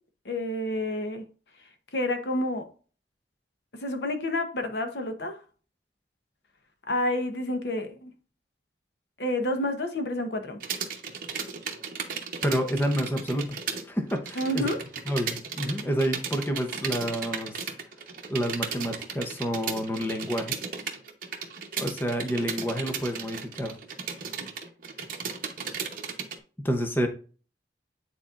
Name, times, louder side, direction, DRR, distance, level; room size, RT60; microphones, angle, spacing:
voice 1, 0.2-1.2 1.9-2.7 3.8-5.4 6.9-8.1 9.2-10.6 14.4-14.8, left 1 dB, 70° left, 0.9 m, -29 dB
sound 1, 10.6-13.8 14.1-26.4, right 6 dB, 50° right, 0.9 m, -35 dB
voice 2, 12.4-13.6 13.8-14.7 15.1-17.7 18.3-20.6 21.8-23.8 26.6-27.1, equal, 10° left, 0.7 m, -29 dB
9.0 x 4.2 x 2.5 m
head